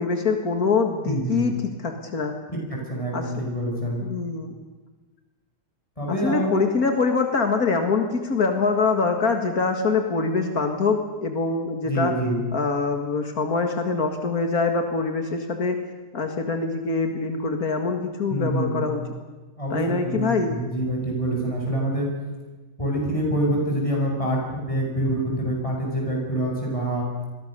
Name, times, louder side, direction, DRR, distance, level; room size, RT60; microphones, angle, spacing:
voice 1, 0.0-2.3 3.1-3.2 4.0-4.5 6.1-12.1 12.5-15.8 16.1-19.0 19.7-20.5, left 4 dB, 85° left, 4 dB, 2.4 m, -24 dB
voice 2, 1.0-1.5 2.5-2.6 2.9-4.1 6.0-6.6 11.8-12.4 18.3-18.9 19.6-22.1 22.8-27.1, right 1 dB, 20° left, -1 dB, 8.1 m, -26 dB
28.5 x 22.5 x 6.9 m, 1.2 s
omnidirectional pair, 1.5 m